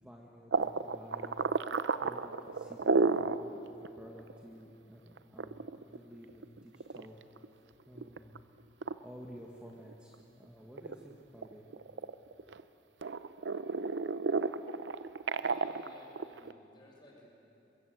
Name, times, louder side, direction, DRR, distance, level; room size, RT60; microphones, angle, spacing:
voice 1, 0.0-1.4 2.0-7.3 7.9-8.4 9.0-11.7, equal, 5° right, -2 dB, 1.6 m, -52 dB
sound 1, 0.5-3.4 3.8-3.9 4.3-4.4 5.2-7.5 8.0-8.4 8.8-8.9 9.5-10.4 10.7-12.6 13.0-16.5, right 4 dB, 75° right, 0.6 m, -32 dB
voice 2, 15.4-17.3, left 1 dB, 25° left, -2 dB, 5.8 m, -56 dB
22.5 x 22.5 x 8.0 m, 2.9 s
head